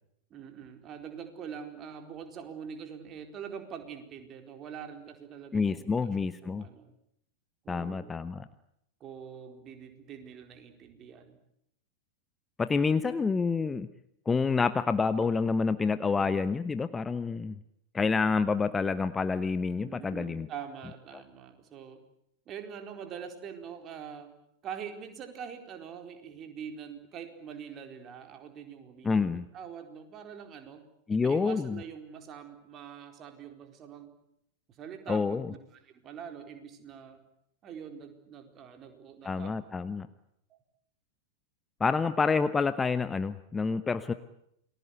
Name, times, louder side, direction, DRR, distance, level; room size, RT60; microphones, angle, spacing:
voice 1, 0.3-6.9 7.6-8.5 9.0-11.4 13.1-13.2 19.8-22.0 22.5-24.3 24.6-30.8 31.2-34.1 34.7-35.6 35.9-37.2 37.6-39.6 40.5-40.6, right 7 dB, 30° right, 6 dB, 4.3 m, -44 dB
voice 2, 5.5-6.6 7.7-8.5 12.6-13.9 14.3-17.6 17.9-20.5 29.0-29.4 31.1-31.8 35.1-35.5 39.2-40.1 41.8-44.1, left 4 dB, 15° left, 13 dB, 1.0 m, -28 dB
29.0 x 20.5 x 8.3 m, 0.74 s
figure-of-eight pair, 90°, 0 cm